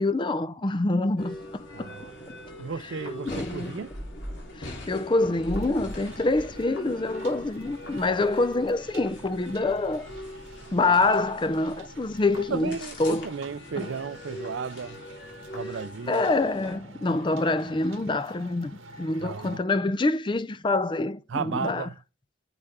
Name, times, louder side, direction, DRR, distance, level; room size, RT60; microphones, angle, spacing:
voice 1, 0.0-1.4 1.8-1.9 3.3-3.7 4.6-10.1 10.7-13.3 13.8-13.9 16.1-18.7 19.0-21.9, left 2 dB, 25° left, 0.4 m, -26 dB
sound 1, 1.2-16.8, left 1 dB, 60° left, 3.5 m, -41 dB
voice 2, 1.7-2.1 2.6-3.9 8.0-8.2 12.4-15.0 15.5-16.2 19.2-19.6 21.3-22.0, right 5 dB, 65° right, 0.5 m, -34 dB
sound 2, 5.5-19.6, right 2 dB, 80° right, 1.7 m, -48 dB
9.8 x 6.5 x 3.6 m
head